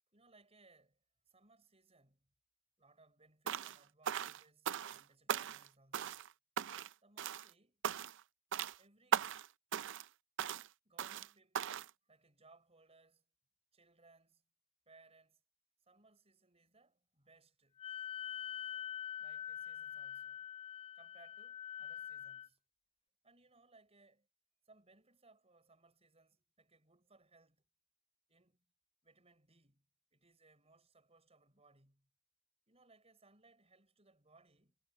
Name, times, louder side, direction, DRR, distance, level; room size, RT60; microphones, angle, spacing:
voice 1, 0.1-1.0 1.3-2.3 2.8-6.2 7.0-7.8 8.8-9.3 10.8-13.3 13.7-14.4 14.9-15.4 15.9-17.8 18.6-18.9 19.2-20.5 20.9-22.6 23.2-24.3 24.7-27.7 28.3-28.7 29.0-29.9 30.1-32.1 32.7-34.8, right 3 dB, 30° right, 6.4 m, -67 dB
sound 1, 3.5-3.8 4.1-5.0 5.3-5.7 5.9-6.3 6.6-6.9 7.2-7.5 7.8-8.2 8.5-8.8 9.1-9.5 9.7-10.1 10.4-10.7 11.0-11.3 11.5-11.9, right 8 dB, 55° right, 0.5 m, -38 dB
Wind instrument woodwind instrument, 17.8-22.5, left 9 dB, 25° left, 0.4 m, -45 dB
head